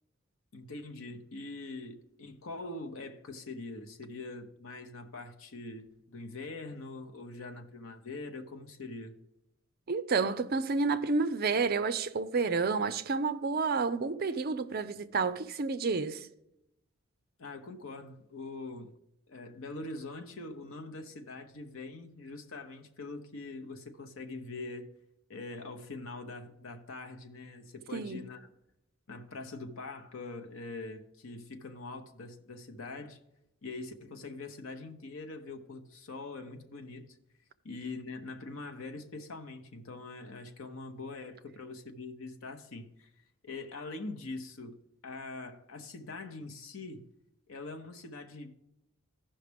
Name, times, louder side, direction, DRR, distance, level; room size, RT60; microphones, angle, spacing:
voice 1, 0.5-9.2 17.4-18.9 19.3-24.9 25.3-28.5 29.1-33.2 33.6-37.1 37.6-43.1 43.4-44.8 45.0-47.1 47.5-48.6, left 3 dB, 75° left, 0.8 m, -43 dB
voice 2, 9.9-16.3 27.9-28.3, right 4 dB, 45° right, 0.5 m, -30 dB
15.0 x 5.6 x 3.4 m
head